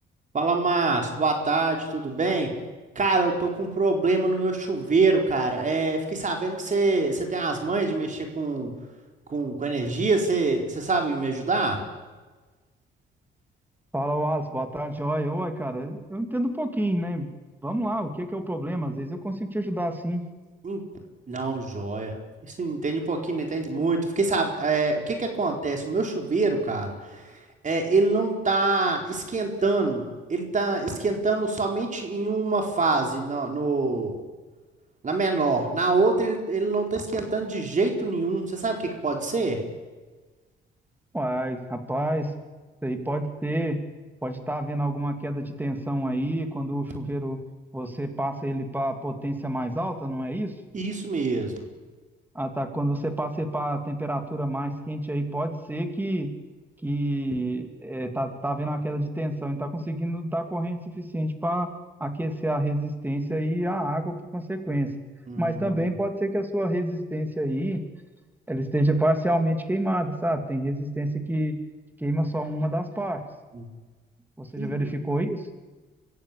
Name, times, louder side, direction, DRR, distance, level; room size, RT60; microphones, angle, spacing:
voice 1, 0.3-2.5 2.9-8.7 9.3-11.8 20.6-20.8 21.3-22.1 22.4-27.2 27.6-34.2 35.0-39.6 50.7-51.5 65.3-65.9 73.5-73.6 74.6-74.9, right 3 dB, 40° right, 3 dB, 4.4 m, -25 dB
voice 2, 13.9-17.3 17.6-20.2 41.1-42.3 42.8-43.8 44.2-47.4 47.7-50.5 52.3-56.3 56.8-61.7 62.0-64.9 65.4-67.8 68.5-71.6 72.0-73.2 74.4-75.4, right 1 dB, 10° right, 6 dB, 3.0 m, -28 dB
25.5 x 15.0 x 8.7 m, 1.3 s
cardioid pair, 90°, 20 cm